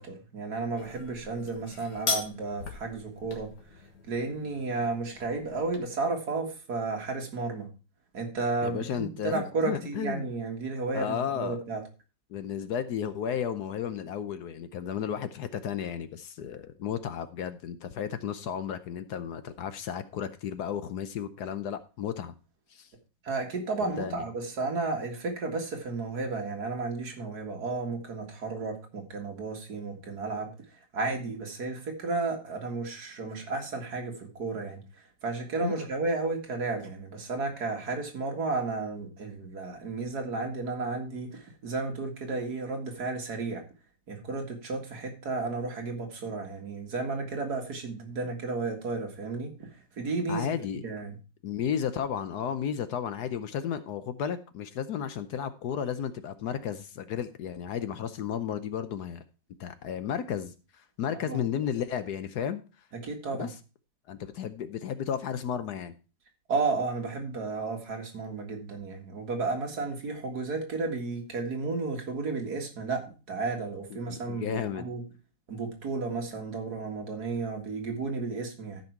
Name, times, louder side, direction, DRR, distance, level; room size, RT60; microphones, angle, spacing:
voice 1, 0.0-3.5 4.0-7.7 8.1-11.8 23.2-30.5 30.9-34.8 35.2-43.6 44.1-49.7 50.0-50.5 50.8-51.2 61.1-61.4 62.9-63.5 66.5-75.1 75.5-78.8, right 3 dB, 60° right, 2 dB, 2.3 m, -33 dB
sound 1, 0.7-5.8, left 5 dB, 90° left, 2.2 m, -38 dB
voice 2, 8.6-10.3 10.9-11.6 12.3-22.3 22.7-22.9 24.0-24.2 35.6-35.7 50.3-50.8 51.4-59.2 59.6-62.6 63.3-63.5 64.1-65.9 74.1-74.9, left 8 dB, 65° left, 12 dB, 1.2 m, -33 dB
13.5 x 5.5 x 4.5 m, 0.33 s
omnidirectional pair, 2.0 m